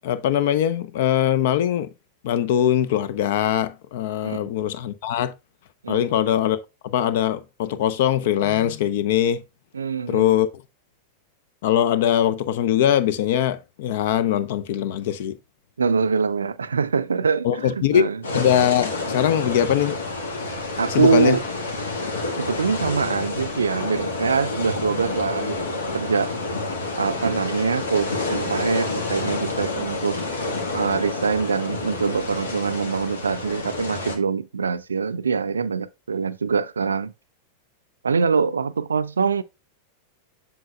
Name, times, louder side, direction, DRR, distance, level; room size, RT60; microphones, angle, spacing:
voice 1, 0.0-1.9 2.2-5.3 5.9-9.4 10.1-10.5 11.6-15.3 17.4-18.0 18.3-20.0 20.9-21.4, left 10 dB, 55° left, 0.6 m, -21 dB
voice 2, 9.7-10.3 15.8-18.2 20.8-21.4 22.4-25.6 25.9-26.3 27.0-30.2 30.7-37.1 38.0-39.4, right 5 dB, 75° right, 0.4 m, -24 dB
sound 1, 18.2-34.2, left 2 dB, 70° left, 1.4 m, -29 dB
7.8 x 6.7 x 2.2 m
figure-of-eight pair, 90°, 0 cm